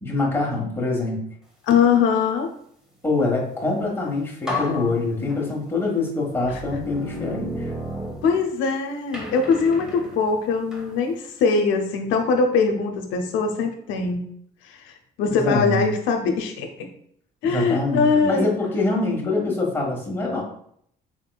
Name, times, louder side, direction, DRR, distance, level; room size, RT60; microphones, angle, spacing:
voice 1, 0.0-1.2 3.0-7.7 15.3-15.8 17.4-20.4, left 3 dB, 10° left, -2 dB, 1.3 m, -24 dB
voice 2, 1.6-2.5 8.2-14.2 14.7-14.9 15.2-16.9 17.4-18.5 19.2-19.5, left 5 dB, 85° left, 4 dB, 0.6 m, -22 dB
sound 1, 3.9-4.0 4.5-5.8 6.4-8.7 9.1-11.0, left 1 dB, 5° right, 1.0 m, -33 dB
4.3 x 3.5 x 2.3 m, 0.67 s
cardioid pair, 105°, 19 cm